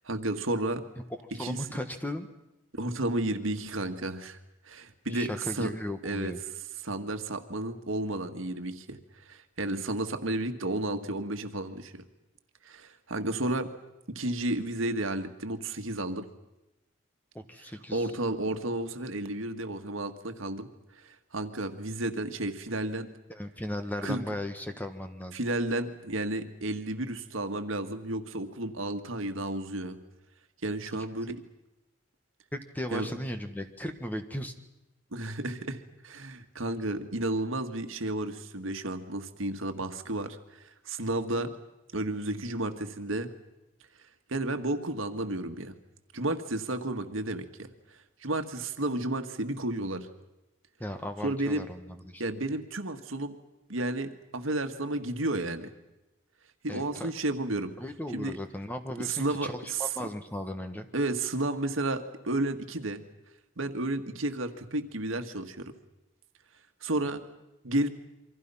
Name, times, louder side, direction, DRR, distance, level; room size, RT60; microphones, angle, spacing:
voice 1, 0.1-0.8 1.4-1.6 2.8-4.4 4.7-5.7 6.0-6.3 6.8-9.0 9.3-12.0 12.6-13.7 14.1-16.3 17.9-20.7 21.0-23.1 24.0-24.2 25.3-30.0 30.6-31.4 32.9-33.1 35.1-41.5 41.9-43.3 44.3-45.8 46.1-47.7 48.2-50.1 51.2-51.7 52.2-53.4 53.7-55.7 56.6-57.8 58.1-58.4 59.0-59.9 60.9-63.1 63.6-65.7 66.8-67.3 67.6-67.9, right 2 dB, 80° right, 7 dB, 1.7 m, -32 dB
voice 2, 1.3-2.3 5.1-6.4 17.3-18.1 23.3-25.4 30.9-31.0 32.5-34.5 50.8-52.2 56.7-57.1 57.8-60.9, left 1 dB, 10° left, 7 dB, 1.4 m, -36 dB
28.0 x 24.5 x 5.7 m, 0.96 s
head